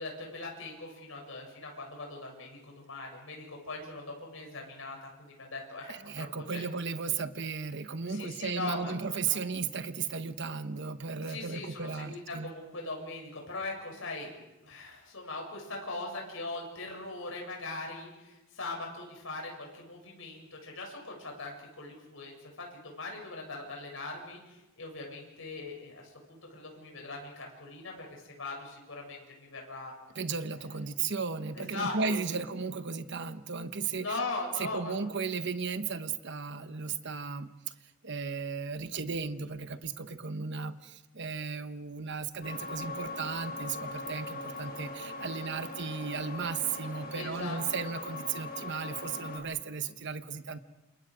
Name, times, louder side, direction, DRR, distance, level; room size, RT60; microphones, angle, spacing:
voice 1, 0.0-6.6 8.0-9.4 11.3-29.9 31.6-32.0 32.3-32.4 34.0-35.1 47.1-47.9, left 3 dB, 65° left, 0 dB, 7.7 m, -40 dB
voice 2, 5.9-12.5 30.1-34.2 34.6-37.5 38.0-50.6, right 5 dB, 55° right, 10 dB, 1.1 m, -35 dB
sound 1, 42.4-49.4, left 3 dB, 45° left, 5.3 m, -40 dB
28.5 x 28.0 x 5.1 m, 1.0 s
head